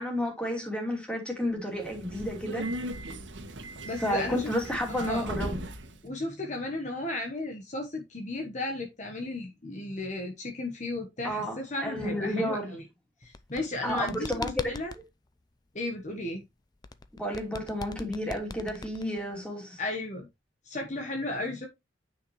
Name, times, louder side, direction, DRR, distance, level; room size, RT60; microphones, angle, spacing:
voice 1, 0.0-2.6 4.0-5.7 11.2-12.7 13.8-14.6 17.1-19.8, equal, 5° left, 2.8 m, -31 dB
Subway metro underground, 1.8-6.0, right 1 dB, 85° right, 1.5 m, -38 dB
voice 2, 3.8-4.5 4.9-5.3 6.0-12.8 13.2-14.9 15.7-16.4 19.8-20.3 20.6-21.7, left 2 dB, 40° left, 1.2 m, -34 dB
sound 1, 13.2-15.0 16.8-19.4, left 3 dB, 20° left, 0.5 m, -40 dB
9.7 x 5.7 x 3.1 m
head